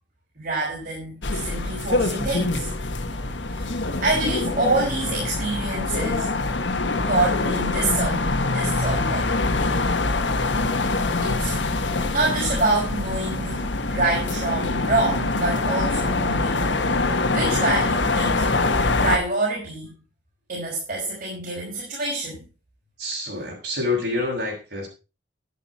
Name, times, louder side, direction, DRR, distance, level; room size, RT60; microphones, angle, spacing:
voice 1, 0.4-2.7 3.5-3.7 4.0-6.3 7.1-9.3 11.2-11.6 12.1-16.9 17.3-18.4 19.0-19.9 20.5-22.4, right 2 dB, 50° right, -4 dB, 5.1 m, -26 dB
sound 1, 1.2-19.2, left 3 dB, 85° left, 1.5 m, -24 dB
voice 2, 23.0-24.9, left 2 dB, 65° right, 0 dB, 6.9 m, -27 dB
11.5 x 11.0 x 4.3 m, 0.31 s
head